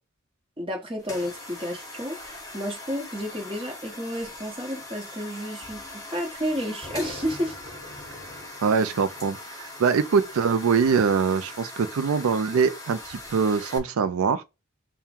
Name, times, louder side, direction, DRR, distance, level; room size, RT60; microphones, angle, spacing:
voice 1, 0.6-5.8 6.1-7.6, equal, 25° right, 1.1 m, -31 dB
sound 1, 1.0-13.8, left 2 dB, 15° left, 1.1 m, -40 dB
voice 2, 8.6-14.4, right 5 dB, 80° right, 0.4 m, -23 dB
3.6 x 2.2 x 4.3 m
head